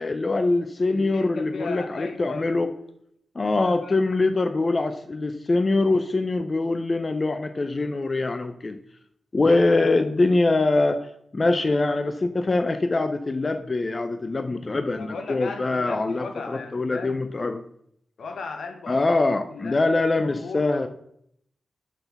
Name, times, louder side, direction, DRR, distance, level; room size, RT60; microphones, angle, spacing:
voice 1, 0.0-2.7 3.4-8.8 9.3-11.1 11.3-17.6 18.9-20.9, left 2 dB, 35° left, 9 dB, 0.5 m, -23 dB
voice 2, 0.9-2.6 3.5-4.1 14.9-17.2 18.2-19.0 19.5-20.9, left 4 dB, 75° left, 6 dB, 1.0 m, -37 dB
6.0 x 5.7 x 5.7 m, 0.71 s
cardioid pair, 75°, 0 cm